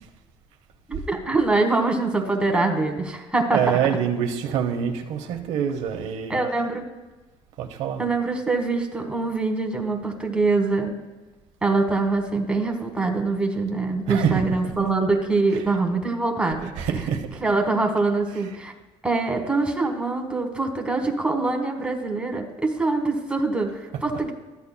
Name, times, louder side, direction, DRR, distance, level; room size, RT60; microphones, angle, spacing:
voice 1, 0.9-3.6 6.3-6.9 8.0-11.0 11.6-16.7 17.4-18.7 19.0-24.3, right 3 dB, 10° right, 3 dB, 1.4 m, -24 dB
voice 2, 3.5-6.7 7.6-8.1 14.1-14.9 15.5-15.8 16.6-17.4 18.3-18.6 23.9-24.1, right 8 dB, 85° right, 4 dB, 0.9 m, -26 dB
13.5 x 8.3 x 2.2 m, 1.2 s
cardioid pair, 105°, 11 cm